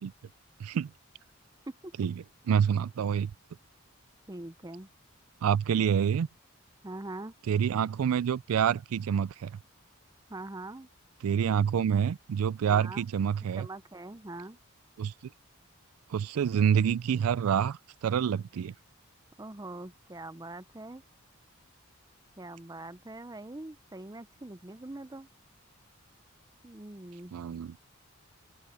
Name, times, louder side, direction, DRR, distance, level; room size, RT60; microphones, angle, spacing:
voice 1, 0.6-0.9 2.0-2.1 2.5-3.3 5.4-6.3 7.5-9.5 11.2-13.7 15.0-15.1 16.1-18.7 27.3-27.8, right 8 dB, 85° right, 0.4 m, -27 dB
voice 2, 4.3-4.9 6.8-7.3 10.3-10.9 12.7-13.0 13.6-14.6 19.4-21.0 22.4-25.3 26.6-27.3, right 2 dB, 15° right, 0.6 m, -43 dB
open air
head